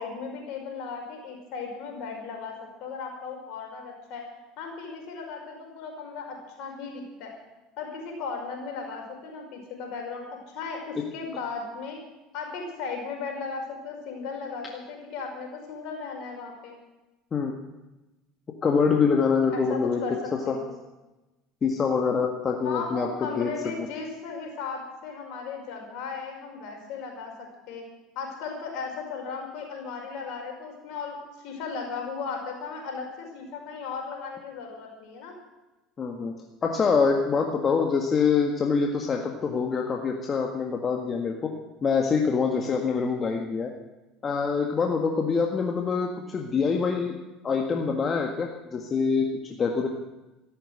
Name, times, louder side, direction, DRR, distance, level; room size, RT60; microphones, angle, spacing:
voice 1, 0.0-4.2 4.6-7.3 7.8-10.2 10.5-12.0 12.3-16.8 19.5-20.1 20.4-20.7 22.6-27.8 28.2-35.4, left 5 dB, 60° left, 1 dB, 5.4 m, -36 dB
voice 2, 18.6-20.0 20.5-20.6 21.6-23.1 23.3-23.5 23.8-23.9 36.0-36.3 36.6-41.4 41.8-43.7 44.2-47.2 47.4-49.9, left 5 dB, 35° left, 2 dB, 1.7 m, -25 dB
14.0 x 12.5 x 7.9 m, 1.1 s
hypercardioid pair, 70°, 0 cm